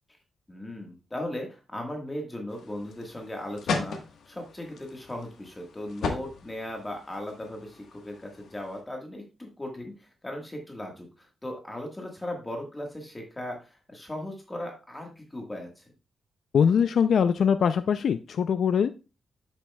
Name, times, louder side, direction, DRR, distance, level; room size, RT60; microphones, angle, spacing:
voice 1, 0.5-4.0 4.2-15.8, left 1 dB, 15° left, 1 dB, 1.5 m, -37 dB
sound 1, 2.5-8.8, left 4 dB, 85° left, 1.3 m, -37 dB
voice 2, 16.5-18.9, left 7 dB, 70° left, 11 dB, 0.4 m, -22 dB
9.1 x 7.4 x 2.3 m, 0.30 s
wide cardioid pair, 120°, 0 cm